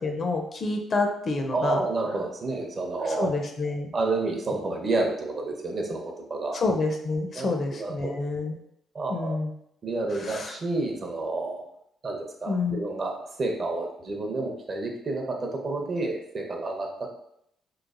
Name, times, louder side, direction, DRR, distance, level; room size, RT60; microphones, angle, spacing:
voice 1, 0.0-1.8 3.1-3.9 6.5-8.6 9.1-9.5 10.2-10.5 12.5-12.8, left 3 dB, 45° left, 4 dB, 0.5 m, -28 dB
voice 2, 1.5-3.3 3.9-6.6 7.3-8.1 8.9-9.4 9.8-11.6 12.0-13.1 13.4-17.2, right 2 dB, 45° right, 1 dB, 0.6 m, -30 dB
3.0 x 2.1 x 2.4 m, 0.73 s
cardioid pair, 90°, 0 cm